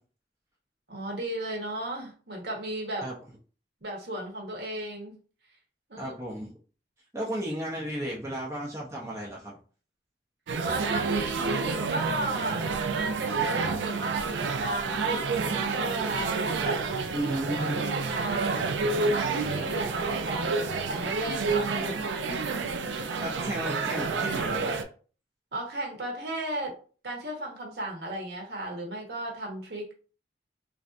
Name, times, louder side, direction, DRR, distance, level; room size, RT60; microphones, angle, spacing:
voice 1, 0.9-3.1 3.8-5.2 5.9-6.1 10.6-16.8 17.6-22.0 22.3-22.7 25.5-26.7 27.0-29.9, right 1 dB, 60° right, -1 dB, 1.0 m, -35 dB
voice 2, 6.0-6.5 7.1-9.6 17.1-17.8 23.2-24.8, equal, 15° right, -4 dB, 0.6 m, -34 dB
sound 1, 10.5-24.8, right 4 dB, 80° right, 0.4 m, -29 dB
3.2 x 2.6 x 2.5 m, 0.39 s
head